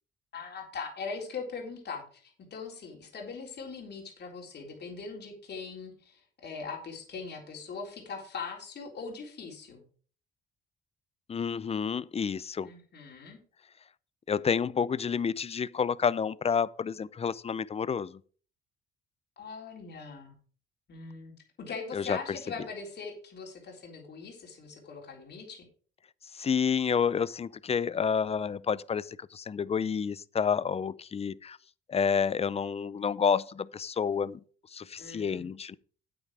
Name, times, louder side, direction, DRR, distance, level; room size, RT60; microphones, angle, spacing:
voice 1, 0.3-9.8 12.6-13.4 19.4-20.3 20.9-21.3 21.6-25.7 35.0-35.4, left 4 dB, 55° left, 3.8 m, -41 dB
voice 2, 11.3-12.7 14.3-18.2 21.9-22.2 26.3-31.6 31.9-34.4 34.7-35.8, left 6 dB, 30° left, 0.5 m, -29 dB
9.1 x 8.7 x 4.8 m
cardioid pair, 90°, 20 cm